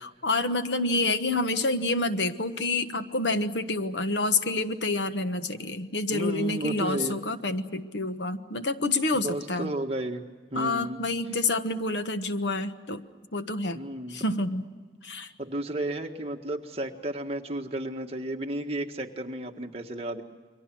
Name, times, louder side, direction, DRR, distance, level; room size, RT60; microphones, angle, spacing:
voice 1, 0.0-9.7 10.5-13.0 13.3-13.8 14.1-14.7 15.0-15.3, left 2 dB, 80° left, 10 dB, 1.3 m, -28 dB
voice 2, 6.1-7.2 9.1-10.2 10.5-11.0 13.7-14.2 15.4-20.2, right 1 dB, 35° right, 2 dB, 1.7 m, -33 dB
29.5 x 23.5 x 6.2 m, 1.5 s
head